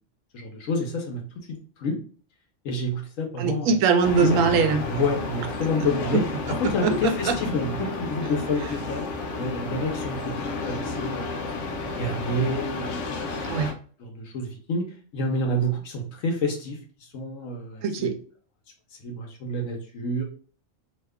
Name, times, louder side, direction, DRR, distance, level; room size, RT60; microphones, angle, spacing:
voice 1, 0.3-1.2 1.5-2.0 2.6-3.7 4.2-4.4 4.9-6.2 6.5-11.3 11.9-13.0 14.0-14.8 15.1-18.1 19.0-20.2, left 1 dB, 85° left, 0 dB, 1.1 m, -28 dB
voice 2, 3.4-4.9 6.6-7.3 13.4-13.8 17.8-18.1, right 5 dB, 90° right, 6 dB, 1.0 m, -22 dB
sound 1, 4.0-13.7, left 3 dB, 70° left, 0.9 m, -32 dB
2.8 x 2.2 x 3.5 m, 0.42 s
omnidirectional pair, 1.3 m